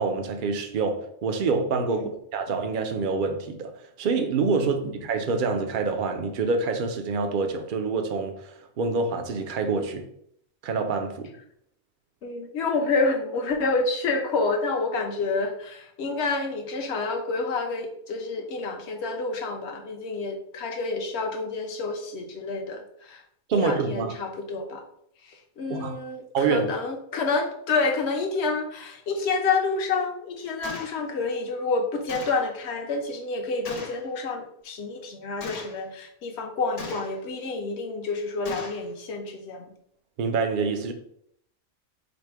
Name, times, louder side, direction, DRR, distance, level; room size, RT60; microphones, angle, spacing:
voice 1, 0.0-3.7 4.0-10.0 10.6-11.3 23.5-24.1 25.7-26.0 26.3-26.7 40.2-40.9, right 4 dB, 55° right, 0.6 m, -26 dB
voice 2, 4.6-4.9 12.2-23.2 23.5-24.8 25.2-39.7, left 3 dB, 55° left, 1.0 m, -28 dB
Gunshot gunfire, 30.6-31.0 32.1-32.5 33.7-34.0 35.4-35.8 36.8-37.3 38.5-38.9, left 4 dB, 90° left, 1.4 m, -38 dB
5.0 x 2.1 x 4.6 m
omnidirectional pair, 1.4 m